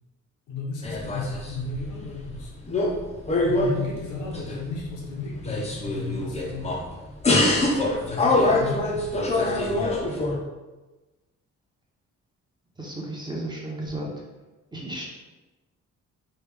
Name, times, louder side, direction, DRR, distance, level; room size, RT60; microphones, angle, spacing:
voice 1, 0.5-2.5 3.4-6.8 8.0-9.1, left 3 dB, 85° left, -2 dB, 0.9 m, -34 dB
sound 1, 0.8-1.9 2.2-3.0 3.3-4.9 5.3-6.9 7.2-10.4, left 2 dB, 20° left, 0.6 m, -24 dB
voice 2, 12.8-14.1 14.7-15.0, right 1 dB, 15° right, -3 dB, 0.8 m, -33 dB
3.3 x 2.3 x 3.4 m, 1.2 s
cardioid pair, 90°, 30 cm